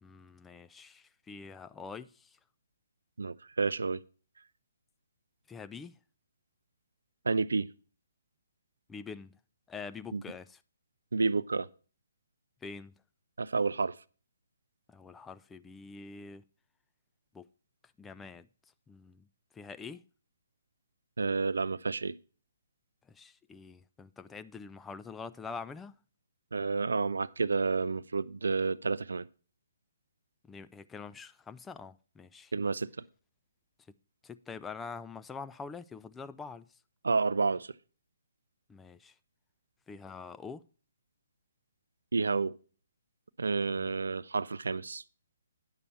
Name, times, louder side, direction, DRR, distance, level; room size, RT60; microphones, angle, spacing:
voice 1, 0.0-2.4 5.5-6.0 8.9-9.3 9.7-10.6 12.6-12.9 14.9-16.4 17.3-17.4 18.0-18.5 18.9-19.3 19.5-20.0 23.1-26.0 30.5-32.5 34.2-36.8 38.7-39.1 39.9-40.6 43.8-43.9, left 5 dB, 10° left, 0.4 m, -45 dB
voice 2, 3.2-4.0 7.2-7.7 10.1-10.2 11.1-11.7 13.4-14.0 21.2-22.2 26.5-29.3 32.5-32.9 37.0-37.7 42.1-42.5 43.4-45.0, right 4 dB, 75° right, 0.4 m, -30 dB
9.8 x 6.8 x 4.1 m
figure-of-eight pair, 135°, 0 cm